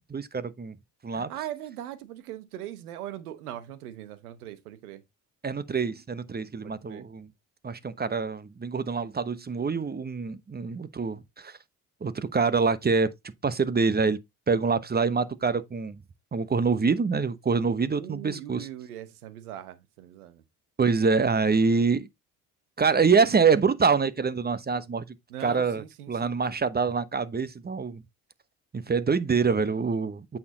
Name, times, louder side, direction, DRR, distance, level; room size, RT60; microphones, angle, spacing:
voice 1, 0.1-0.7 1.0-1.3 5.4-7.3 7.6-11.6 12.0-13.1 13.4-14.2 14.5-16.0 16.3-18.7 20.8-22.1 22.8-25.0 25.4-28.0 28.7-30.4, right 5 dB, 20° right, 0.9 m, -25 dB
voice 2, 1.1-5.0 6.6-7.1 17.9-20.4 25.3-26.4, right 12 dB, 90° right, 1.2 m, -40 dB
8.4 x 4.4 x 3.9 m
hypercardioid pair, 65°, 43 cm